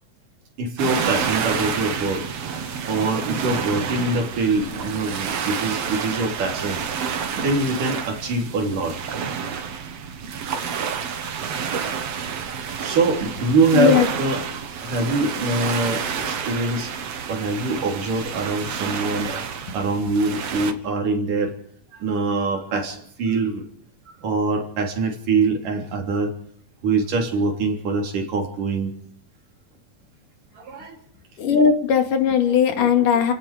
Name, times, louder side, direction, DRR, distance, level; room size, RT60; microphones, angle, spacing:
voice 1, 0.6-2.6 2.9-6.8 7.4-9.0 11.0-11.4 12.8-16.9 17.3-19.4 19.7-21.5 21.9-23.6 24.2-26.3 26.8-28.9 30.5-31.0 32.8-32.9, right 3 dB, 85° right, 2 dB, 5.1 m, -24 dB
sound 1, 0.8-20.7, right 6 dB, 55° right, 2.6 m, -29 dB
voice 2, 13.7-14.1 31.4-33.3, left 7 dB, 85° left, 6 dB, 4.0 m, -18 dB
29.5 x 17.5 x 5.2 m, 0.64 s
omnidirectional pair, 3.6 m